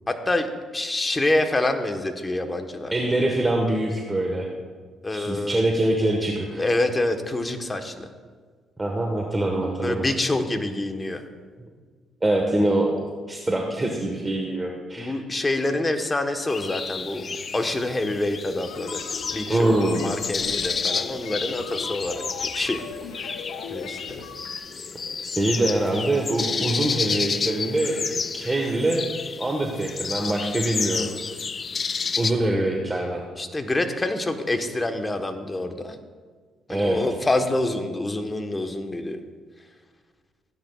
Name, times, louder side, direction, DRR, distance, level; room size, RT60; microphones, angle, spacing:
voice 1, 0.1-2.9 5.0-5.6 6.6-8.1 9.8-11.2 15.0-17.3 17.5-19.0 19.3-22.2 22.5-22.8 23.1-23.4 23.7-24.2 33.4-36.0 36.7-39.2, left 2 dB, 20° left, 6 dB, 1.2 m, -26 dB
voice 2, 2.9-4.5 5.1-6.6 8.8-10.0 12.2-12.9 13.3-15.1 19.5-20.0 25.2-29.0 29.4-31.1 32.2-33.2 36.7-37.0, right 1 dB, 20° right, 1 dB, 1.4 m, -24 dB
sound 1, 16.5-32.3, left 5 dB, 45° left, 0.5 m, -31 dB
sound 2, 18.7-24.6, left 6 dB, 90° left, 0.9 m, -39 dB
16.0 x 10.0 x 2.4 m, 1.5 s
supercardioid pair, 65°, 0 cm